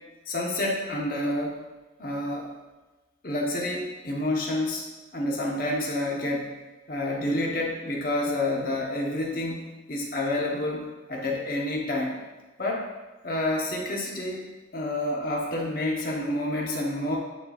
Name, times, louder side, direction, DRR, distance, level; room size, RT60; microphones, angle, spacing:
voice 1, 0.3-1.6 2.0-2.5 3.2-4.8 5.1-6.5 6.9-12.2 12.6-12.9 13.2-17.2, left 1 dB, 50° left, -1 dB, 1.1 m, -29 dB
9.7 x 4.3 x 2.5 m, 1.2 s
head